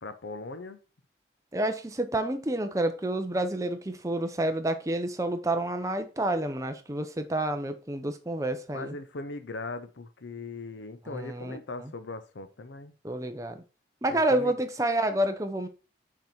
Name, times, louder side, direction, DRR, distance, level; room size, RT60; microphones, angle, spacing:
voice 1, 0.0-0.8 8.7-12.9 14.1-14.6, left 3 dB, 85° left, 0.7 m, -39 dB
voice 2, 1.5-9.0 11.1-11.9 13.0-13.6 14.0-15.7, right 1 dB, 20° right, 0.7 m, -29 dB
6.0 x 4.4 x 4.3 m
head